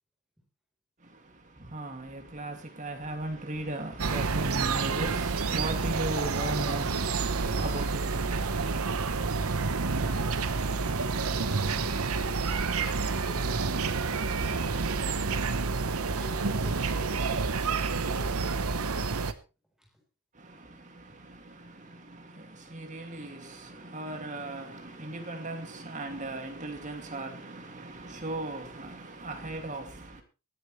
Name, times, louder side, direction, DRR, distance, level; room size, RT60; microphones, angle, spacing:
voice 1, 1.0-9.3 20.3-30.2, right 1 dB, 35° right, 2.4 m, -38 dB
sound 1, 4.0-19.3, right 4 dB, 80° right, 1.0 m, -29 dB
voice 2, 16.1-19.0 19.8-19.9 21.1-21.2, equal, ahead, 4.1 m, -49 dB
23.0 x 10.0 x 3.3 m
head